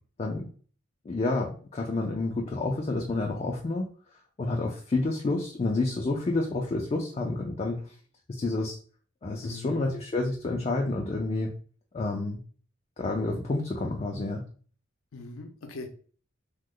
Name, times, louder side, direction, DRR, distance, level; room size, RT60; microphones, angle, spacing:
voice 1, 1.1-3.9 4.4-7.8 8.4-8.8 9.2-11.5 11.9-12.4 13.0-14.4, left 2 dB, 30° left, 0 dB, 0.3 m, -29 dB
voice 2, 9.4-9.9 15.1-15.9, left 2 dB, 80° left, 5 dB, 0.5 m, -41 dB
3.0 x 2.1 x 3.6 m, 0.43 s
head